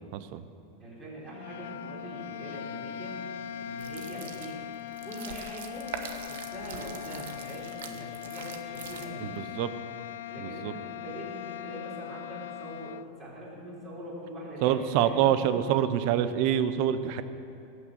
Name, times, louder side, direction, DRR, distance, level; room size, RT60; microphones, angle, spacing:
voice 1, 0.8-3.2 3.6-4.6 5.0-5.9 6.2-9.5 10.3-15.2, equal, 20° right, -6 dB, 3.6 m, -42 dB
sound 1, 1.3-13.1, left 10 dB, 85° left, 0.4 m, -40 dB
sound 2, 3.7-9.4, right 7 dB, 80° right, 1.1 m, -43 dB
voice 2, 9.2-9.7 10.4-10.7 14.6-17.2, right 10 dB, 45° right, 12 dB, 0.6 m, -26 dB
18.5 x 6.2 x 7.7 m, 2.6 s
supercardioid pair, 170°, 0 cm